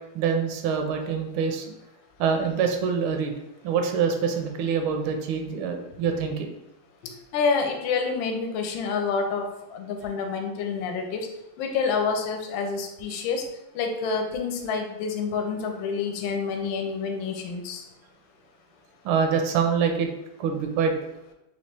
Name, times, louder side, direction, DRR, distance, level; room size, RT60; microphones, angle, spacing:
voice 1, 0.1-1.7 2.2-3.3 3.6-6.5 19.0-20.1 20.4-20.9, right 6 dB, 80° right, 4 dB, 1.4 m, -25 dB
voice 2, 7.3-11.3 11.6-13.4 13.7-17.8, left 5 dB, 75° left, 4 dB, 1.3 m, -28 dB
3.9 x 3.0 x 3.3 m, 0.89 s
omnidirectional pair, 2.3 m